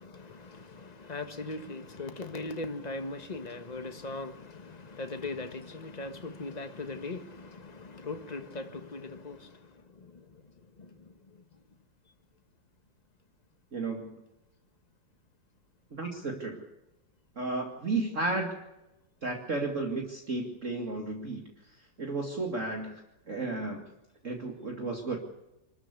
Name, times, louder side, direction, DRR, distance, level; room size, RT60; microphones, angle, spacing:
voice 1, 0.0-9.6 9.9-10.2 10.8-10.9, left 3 dB, 25° left, 1.5 m, -39 dB
voice 2, 13.7-14.2 15.9-16.7 17.4-18.5 19.2-21.5 22.0-23.8 24.2-25.2, right 3 dB, 45° right, 2.5 m, -33 dB
25.5 x 13.5 x 8.3 m
omnidirectional pair, 1.9 m